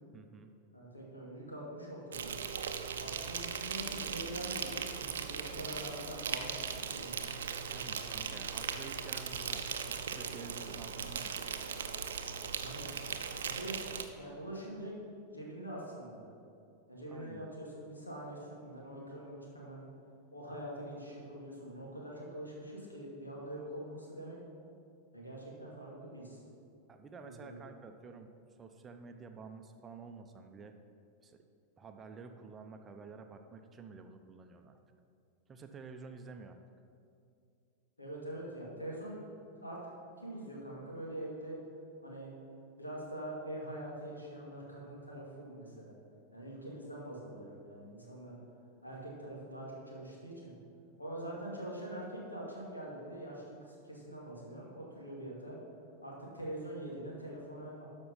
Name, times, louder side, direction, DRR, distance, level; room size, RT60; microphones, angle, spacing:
voice 1, 0.1-0.5 7.7-9.7 10.0-11.4 17.1-17.5 26.9-28.3 28.6-30.8 31.2-31.4 31.8-34.8 35.5-36.6, right 4 dB, 20° right, 6 dB, 0.7 m, -50 dB
voice 2, 0.7-2.4 3.0-7.2 12.5-13.0 13.4-13.7 14.1-15.0 15.3-16.3 16.9-19.8 20.3-24.4 25.1-26.4 27.2-27.6 38.0-39.3 39.6-39.8 40.2-41.6 42.0-42.3 42.8-45.9 46.3-48.4 48.8-50.5 51.0-55.6 56.0-57.9, right 1 dB, 80° left, -3 dB, 2.4 m, -44 dB
Insect, 2.1-14.0, right 7 dB, 65° right, 0.6 m, -39 dB
12.5 x 5.3 x 5.4 m, 2.5 s
figure-of-eight pair, 90°, 0 cm